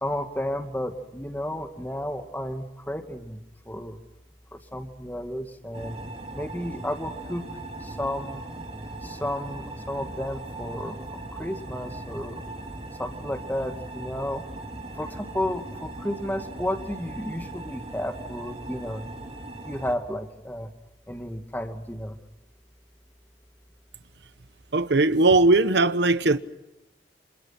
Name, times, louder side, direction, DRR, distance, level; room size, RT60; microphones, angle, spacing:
voice 1, 0.0-3.4 3.7-4.0 4.5-6.0 6.3-7.4 7.8-8.4 9.0-11.0 11.3-12.4 13.0-14.4 15.0-19.1 19.6-20.7 21.1-22.2, left 1 dB, 10° left, 2.3 m, -32 dB
sound 1, 5.7-19.9, right 2 dB, 35° right, 3.1 m, -39 dB
voice 2, 24.7-26.4, right 2 dB, 70° right, 1.0 m, -19 dB
29.5 x 27.0 x 6.0 m
head